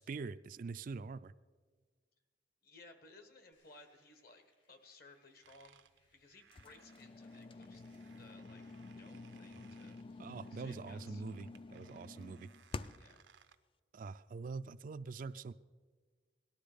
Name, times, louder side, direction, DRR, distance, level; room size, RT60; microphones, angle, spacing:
voice 1, 0.0-1.3 10.2-12.5 13.9-15.5, right 4 dB, 50° right, 13 dB, 0.3 m, -44 dB
voice 2, 2.6-5.8 6.1-7.8 8.2-10.0 10.5-11.2 13.0-13.2, left 3 dB, 55° left, 8 dB, 1.4 m, -60 dB
sound 1, 3.5-10.8, left 2 dB, 80° left, 3.8 m, -76 dB
sound 2, 5.4-13.6, right 7 dB, 85° right, 0.6 m, -66 dB
sound 3, 6.5-13.2, left 3 dB, 30° left, 0.3 m, -49 dB
18.5 x 12.0 x 5.1 m, 1.5 s
head